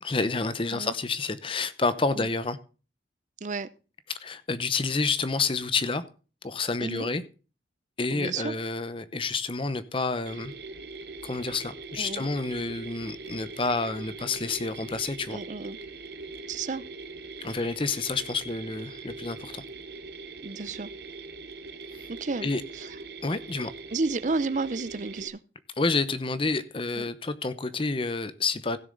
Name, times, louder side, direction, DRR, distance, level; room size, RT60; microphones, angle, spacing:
voice 1, 0.0-2.6 4.1-6.0 6.4-7.2 8.0-10.5 11.2-15.4 17.4-19.6 21.9-22.1 22.4-22.6 23.2-23.7 25.8-28.8, left 3 dB, 30° left, 0.8 m, -29 dB
voice 2, 8.1-8.5 12.0-12.3 15.3-15.8 16.5-16.8 20.4-20.9 22.1-22.5 22.8-22.9 23.9-25.4 27.0-27.1, right 3 dB, 45° right, 0.6 m, -31 dB
Mechanisms, 10.3-25.3, right 3 dB, 60° right, 1.2 m, -42 dB
16.0 x 6.9 x 3.9 m
head